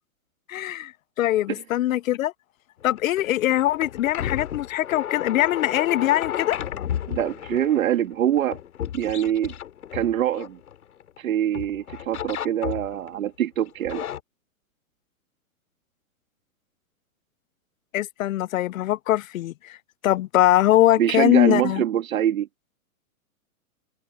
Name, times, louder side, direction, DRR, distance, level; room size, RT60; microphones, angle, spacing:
voice 1, 0.5-0.9 1.2-2.3 2.8-6.6 17.9-19.8 20.0-21.8, left 14 dB, 70° left, 0.5 m, -22 dB
sound 1, 2.8-11.2 11.5-13.2 13.7-14.2, left 10 dB, 85° left, 2.8 m, -33 dB
voice 2, 7.1-8.6 8.9-9.5 9.9-10.6 11.2-14.0 21.0-22.5, right 11 dB, 70° right, 2.1 m, -24 dB
hypercardioid pair, 170°, 43 cm